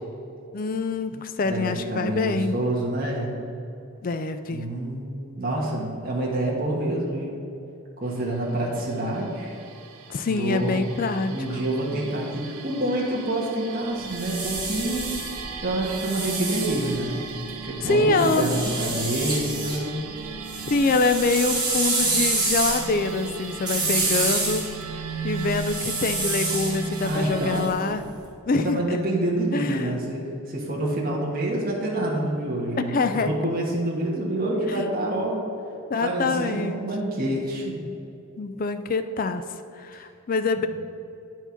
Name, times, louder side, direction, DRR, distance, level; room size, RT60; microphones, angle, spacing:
voice 1, 0.5-2.6 4.0-4.6 10.1-11.4 17.8-18.6 20.6-24.6 24.9-28.0 28.5-29.0 29.5-30.0 32.8-33.3 34.7-34.9 35.9-36.8 38.4-39.4 39.8-40.7, left 3 dB, 40° left, 9 dB, 0.3 m, -25 dB
voice 2, 1.4-3.3 4.5-7.4 8.0-9.6 10.3-10.9 11.3-15.2 15.6-17.2 17.7-19.9 27.0-27.7 28.5-30.2 30.5-35.4 36.0-37.8, right 1 dB, 40° right, -4 dB, 1.4 m, -27 dB
sound 1, 8.1-27.7, right 5 dB, 75° right, 0.7 m, -37 dB
sound 2, 13.9-17.5 18.2-19.8 20.2-28.1, right 3 dB, 20° right, 1.8 m, -28 dB
9.5 x 4.6 x 5.8 m, 2.7 s
head